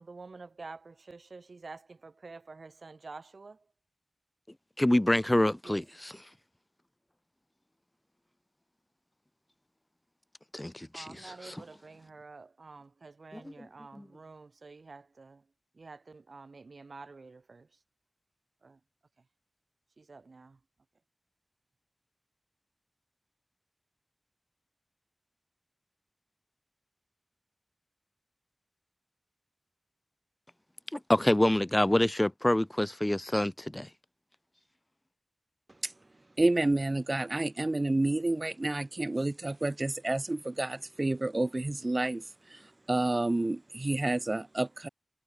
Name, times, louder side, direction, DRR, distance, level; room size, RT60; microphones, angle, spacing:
voice 1, 0.0-3.7 5.6-5.8 10.9-17.8 18.6-18.8 19.2-19.3 20.0-20.6, right 3 dB, 75° right, 6.3 m, -49 dB
voice 2, 4.8-5.8 10.5-11.0 30.9-33.9, left 1 dB, 20° left, 1.2 m, -26 dB
voice 3, 36.4-42.2 42.5-44.9, right 2 dB, 40° right, 0.7 m, -29 dB
wide cardioid pair, 55°, 0 cm